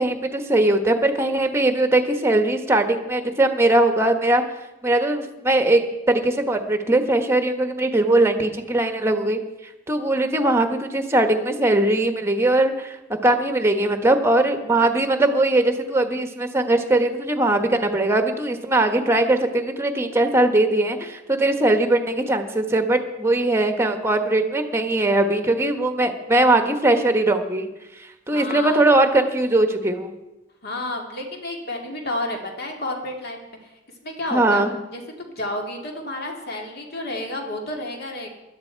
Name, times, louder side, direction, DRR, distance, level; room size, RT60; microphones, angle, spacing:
voice 1, 0.0-4.4 4.8-5.8 6.1-9.4 9.9-13.0 13.2-27.7 28.3-30.1 34.3-34.8, right 2 dB, 15° right, 7 dB, 1.1 m, -20 dB
voice 2, 28.3-28.9 30.6-33.4 34.0-34.6 34.9-38.3, left 1 dB, 50° left, 2 dB, 2.3 m, -31 dB
17.5 x 12.0 x 4.5 m, 0.99 s
head